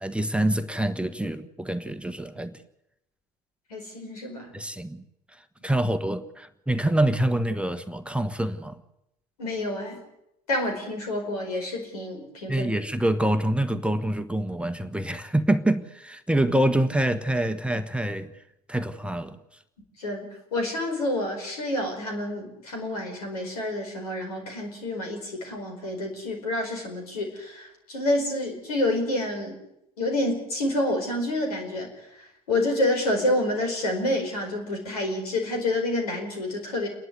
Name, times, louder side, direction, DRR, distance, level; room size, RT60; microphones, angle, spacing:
voice 1, 0.0-2.5 4.5-5.0 5.6-8.8 12.5-18.3 18.7-19.4, right 1 dB, 5° right, 1.2 m, -26 dB
voice 2, 3.7-4.5 9.4-10.0 10.5-12.7 20.0-29.5 30.0-31.9 32.5-36.9, left 1 dB, 85° left, 4.8 m, -28 dB
28.0 x 11.0 x 9.6 m
hypercardioid pair, 65°, 19 cm